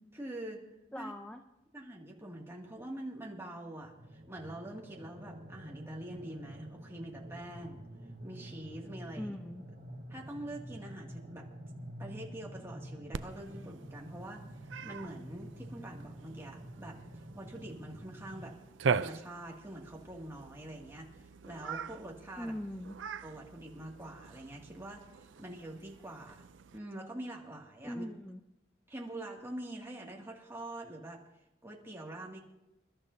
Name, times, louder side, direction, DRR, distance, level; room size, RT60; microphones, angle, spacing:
voice 1, 0.1-0.6 1.0-1.1 1.7-7.8 8.2-9.4 10.1-11.5 12.0-14.4 14.8-17.0 17.3-18.6 18.9-22.6 23.2-26.5 26.7-28.1 28.9-31.2 31.6-32.4, right 1 dB, 15° right, -2 dB, 2.2 m, -45 dB
voice 2, 0.9-1.4 9.2-9.7 22.4-23.0 27.8-28.4, equal, 5° left, 5 dB, 0.5 m, -41 dB
sound 1, 3.8-18.5, equal, 65° right, 4.9 m, -48 dB
Cat, 13.1-26.8, right 5 dB, 90° right, 0.5 m, -41 dB
27.5 x 12.5 x 2.8 m, 0.92 s
head